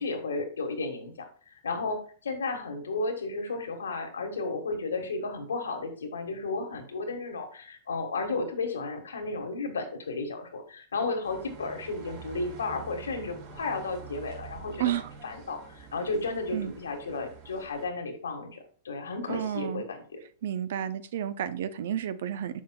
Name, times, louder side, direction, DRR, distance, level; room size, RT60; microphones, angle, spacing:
voice 1, 0.0-14.9 15.2-20.2, left 3 dB, 85° left, 5 dB, 1.4 m, -33 dB
sound 1, 11.2-17.9, right 5 dB, 50° right, 2.4 m, -47 dB
voice 2, 14.8-15.1 16.5-16.7 19.3-19.8 20.4-22.6, right 10 dB, 65° right, 13 dB, 0.6 m, -31 dB
7.0 x 6.3 x 2.3 m, 0.43 s
hypercardioid pair, 110°, 0 cm